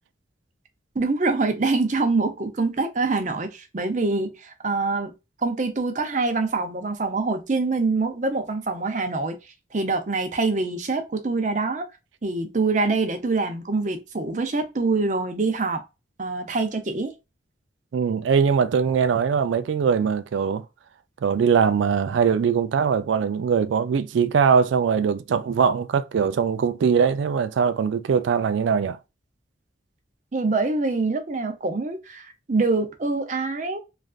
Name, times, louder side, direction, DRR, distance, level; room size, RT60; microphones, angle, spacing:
voice 1, 0.9-5.1 5.4-9.4 9.7-11.9 12.2-15.8 16.2-17.1 30.3-33.8, right 3 dB, 40° right, 0.6 m, -25 dB
voice 2, 17.9-20.6 21.2-29.0, right 6 dB, 90° right, 0.3 m, -21 dB
3.2 x 2.5 x 2.3 m
head